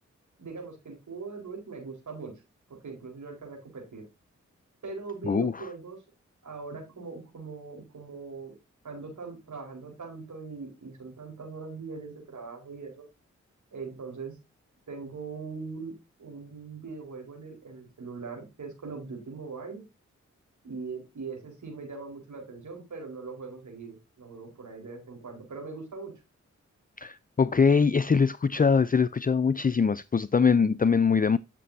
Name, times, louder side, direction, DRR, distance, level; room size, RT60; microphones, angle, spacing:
voice 1, 0.4-2.3 2.7-4.0 4.8-6.0 6.4-8.5 8.8-13.0 13.7-14.4 14.9-19.8 20.6-26.1, right 4 dB, 70° right, 4.5 m, -41 dB
voice 2, 5.3-5.7 27.0-31.4, left 5 dB, 30° left, 0.5 m, -23 dB
12.5 x 6.8 x 2.7 m
cardioid pair, 40°, 30 cm